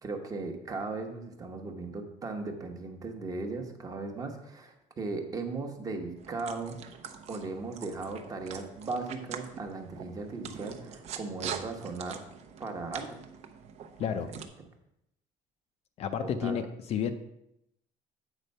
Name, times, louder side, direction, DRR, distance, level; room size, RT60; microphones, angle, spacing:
voice 1, 0.0-6.8 7.3-12.2 12.6-13.2 14.1-14.4 16.2-16.6, right 3 dB, 25° right, 4 dB, 0.9 m, -37 dB
sound 1, 6.2-14.5, right 7 dB, 50° right, 0.7 m, -44 dB
voice 2, 14.0-14.3 16.0-17.1, left 8 dB, 45° left, 9 dB, 0.5 m, -31 dB
8.1 x 4.3 x 5.4 m, 0.82 s
cardioid pair, 155°, 15 cm